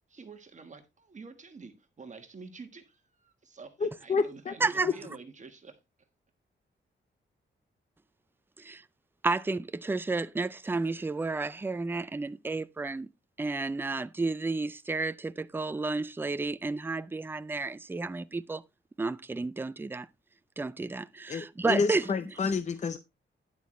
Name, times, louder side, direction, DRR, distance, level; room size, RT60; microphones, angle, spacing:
voice 1, 0.1-5.8, right 4 dB, 35° right, 1.4 m, -48 dB
voice 2, 3.8-4.5 4.8-4.9 21.3-23.0, left 4 dB, 35° left, 0.6 m, -29 dB
voice 3, 4.6-4.9 8.6-8.8 9.2-13.1 13.4-18.6 19.0-20.1 20.6-22.0, right 3 dB, 10° right, 0.4 m, -31 dB
10.5 x 8.2 x 3.1 m
wide cardioid pair, 145°, 20 cm